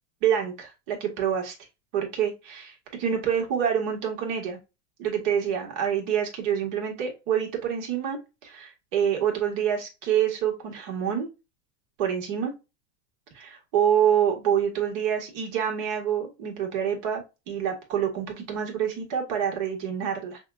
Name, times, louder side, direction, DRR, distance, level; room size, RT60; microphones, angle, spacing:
voice 1, 0.2-1.6 1.9-4.6 5.0-11.3 12.0-12.5 13.3-20.4, right 8 dB, 55° right, 1 dB, 1.9 m, -27 dB
6.2 x 2.4 x 2.4 m, 0.26 s
supercardioid pair, 120°, 40 cm